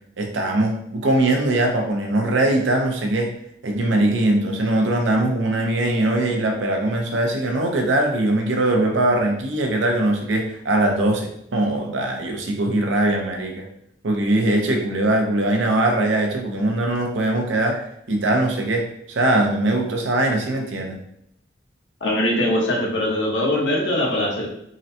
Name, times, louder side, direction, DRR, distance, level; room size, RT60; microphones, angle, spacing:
voice 1, 0.2-3.3 3.6-13.7 14.0-21.0, right 1 dB, 85° right, 2 dB, 0.6 m, -21 dB
voice 2, 22.0-24.5, left 1 dB, 80° left, -2 dB, 0.9 m, -21 dB
3.8 x 2.1 x 2.7 m, 0.74 s
head